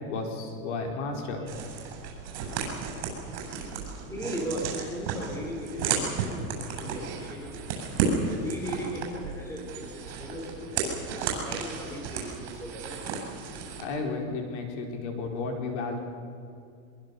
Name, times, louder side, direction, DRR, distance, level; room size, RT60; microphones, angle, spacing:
voice 1, 0.1-1.4 13.8-16.0, left 3 dB, 60° left, 2 dB, 4.5 m, -33 dB
sound 1, 1.5-13.8, right 5 dB, 60° right, 7.5 m, -33 dB
voice 2, 4.1-7.6 8.2-10.9 11.1-13.1, equal, 5° left, 0 dB, 4.1 m, -37 dB
24.0 x 22.5 x 7.0 m, 2.4 s
supercardioid pair, 165°, 40 cm